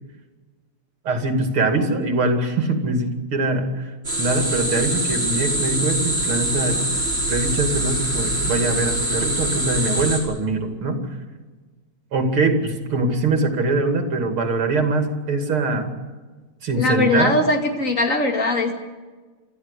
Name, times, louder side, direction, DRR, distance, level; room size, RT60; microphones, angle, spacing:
voice 1, 1.0-6.8 7.3-11.0 12.1-15.9 16.6-17.4, right 2 dB, 85° right, 5 dB, 3.4 m, -23 dB
sound 1, 4.0-10.2, right 1 dB, 25° right, 5.7 m, -24 dB
voice 2, 16.8-18.7, left 2 dB, 40° left, 3 dB, 2.8 m, -20 dB
26.5 x 14.0 x 8.4 m, 1.3 s
omnidirectional pair, 2.3 m